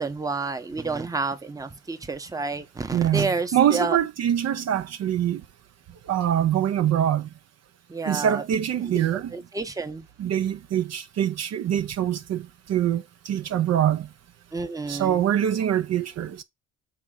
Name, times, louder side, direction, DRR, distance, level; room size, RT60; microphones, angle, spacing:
voice 1, 0.0-4.0 7.9-8.4 8.8-9.0 9.3-10.1 14.5-15.2, right 3 dB, 10° right, 0.8 m, -30 dB
voice 2, 2.9-5.4 6.1-7.3 8.1-9.3 10.2-14.1 14.9-16.4, right 10 dB, 60° right, 0.6 m, -24 dB
5.8 x 4.3 x 3.8 m
cardioid pair, 90°, 30 cm